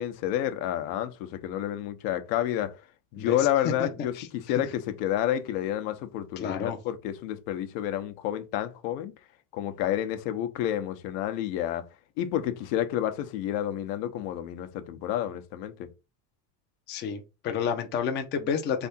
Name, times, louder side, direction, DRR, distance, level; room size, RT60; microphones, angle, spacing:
voice 1, 0.0-2.7 3.1-9.1 9.5-11.8 12.2-15.9, left 11 dB, 75° left, 0.9 m, -30 dB
voice 2, 3.2-3.5 3.8-3.9 4.2-4.3 4.6-4.7 6.4-6.8 16.9-18.9, left 7 dB, 25° left, 0.4 m, -30 dB
3.6 x 3.5 x 4.1 m
cardioid pair, 155°, 48 cm